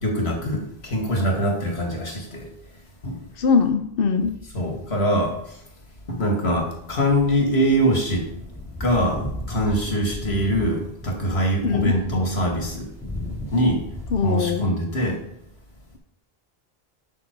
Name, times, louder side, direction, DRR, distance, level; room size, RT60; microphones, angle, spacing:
voice 1, 0.0-2.5 3.0-3.2 4.5-5.6 6.1-8.3 8.8-12.9 13.5-13.8 14.2-15.2, equal, 85° left, 1 dB, 2.4 m, -23 dB
voice 2, 3.4-4.3 11.6-11.9 14.1-14.7, left 5 dB, 65° left, 6 dB, 0.9 m, -21 dB
sound 1, 6.8-14.1, left 1 dB, ahead, 3.2 m, -35 dB
12.0 x 6.2 x 4.6 m, 0.74 s
omnidirectional pair, 1.0 m